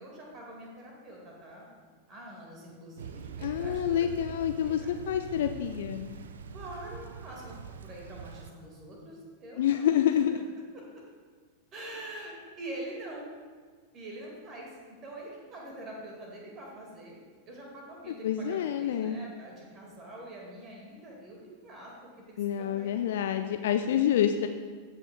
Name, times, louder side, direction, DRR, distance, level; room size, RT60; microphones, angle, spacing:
voice 1, 0.0-1.7 2.1-4.3 4.6-4.9 6.5-7.6 7.8-10.4 10.7-10.8 11.7-13.3 13.9-14.7 15.0-17.2 17.5-23.0 23.2-23.5, right 1 dB, 30° right, -2 dB, 1.9 m, -45 dB
Thunder / Rain, 3.0-8.5, right 6 dB, 65° right, 0.4 m, -43 dB
voice 2, 3.4-6.2 9.6-10.4 18.2-19.2 22.4-24.5, left 10 dB, 55° left, 7 dB, 0.3 m, -27 dB
16.5 x 5.7 x 2.3 m, 1.5 s
figure-of-eight pair, 90°, 0 cm